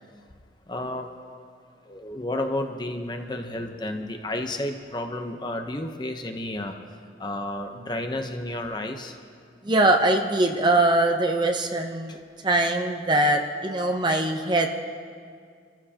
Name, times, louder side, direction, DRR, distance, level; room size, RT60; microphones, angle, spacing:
voice 1, 0.7-1.1 1.9-6.7 7.2-9.1, left 1 dB, 25° left, 4 dB, 0.9 m, -31 dB
voice 2, 9.6-12.2 12.4-14.7, right 2 dB, 25° right, 4 dB, 0.8 m, -22 dB
26.5 x 15.0 x 2.9 m, 2.1 s
head